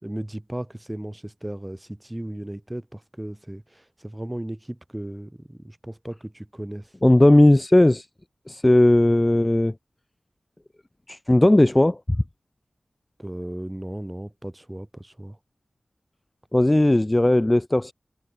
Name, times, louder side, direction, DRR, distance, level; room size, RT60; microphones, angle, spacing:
voice 1, 0.0-6.9 13.2-15.4, right 1 dB, 15° right, 3.2 m, -36 dB
voice 2, 7.0-8.1 8.5-9.7 11.1-12.0 16.5-17.9, left 1 dB, 25° left, 0.4 m, -17 dB
wide cardioid pair, 60°, 0 cm